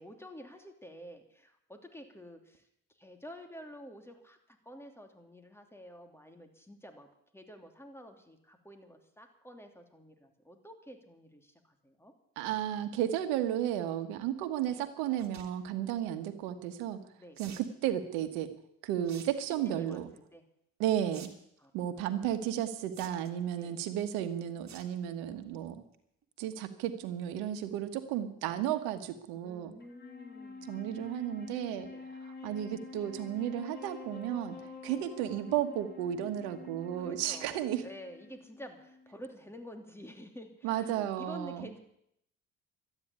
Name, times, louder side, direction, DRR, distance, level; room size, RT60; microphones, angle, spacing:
voice 1, 0.0-2.7 3.0-12.1 14.7-14.8 17.2-17.4 19.7-20.5 21.6-22.4 23.5-23.8 29.4-30.9 31.8-32.1 34.9-35.1 36.9-41.8, equal, 5° left, 5 dB, 3.0 m, -50 dB
voice 2, 12.4-17.0 17.4-18.5 18.8-20.1 20.8-21.3 21.7-25.8 26.4-29.7 30.7-31.9 32.4-34.6 34.8-37.8 40.6-41.7, right 11 dB, 85° right, 9 dB, 1.5 m, -33 dB
sound 1, 15.1-15.5 17.4-17.7 19.0-19.3 19.7-20.0 21.1-21.3 21.6-21.7 22.9-23.4 24.7-24.9 25.3-25.6 25.9-26.0 26.2-26.3, right 7 dB, 50° right, 2.3 m, -50 dB
Wind instrument woodwind instrument, 29.8-39.3, left 4 dB, 30° left, 3.5 m, -48 dB
13.0 x 9.7 x 9.7 m, 0.74 s
supercardioid pair, 70°, 36 cm